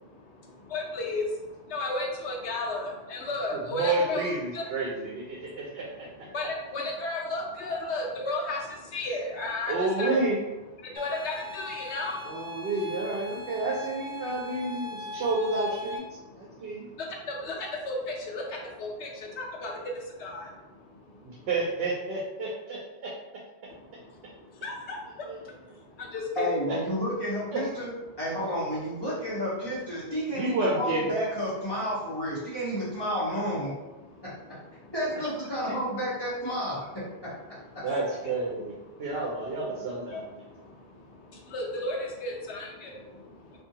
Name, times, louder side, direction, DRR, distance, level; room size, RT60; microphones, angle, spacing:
voice 1, 0.0-4.6 5.3-5.8 6.3-10.2 10.8-12.7 13.4-13.5 14.2-15.2 16.2-21.5 23.7-26.5 30.0-30.1 34.1-34.3 34.8-34.9 37.8-38.0 38.2-38.3 38.9-39.3 40.1-43.6, left 2 dB, 80° left, 0 dB, 0.9 m, -35 dB
voice 2, 3.5-6.1 9.7-10.4 12.3-16.0 16.4-16.9 21.2-23.1 25.2-25.4 27.5-27.6 30.3-31.2 37.8-38.7 39.0-40.2, right 2 dB, 70° right, -3 dB, 0.8 m, -30 dB
sound 1, 11.0-16.0, left 4 dB, 45° right, 0.4 m, -40 dB
voice 3, 26.3-33.7 34.2-34.3 34.9-36.9 37.2-37.3, equal, 25° left, -12 dB, 1.2 m, -31 dB
2.6 x 2.6 x 2.7 m, 1.0 s
omnidirectional pair, 1.1 m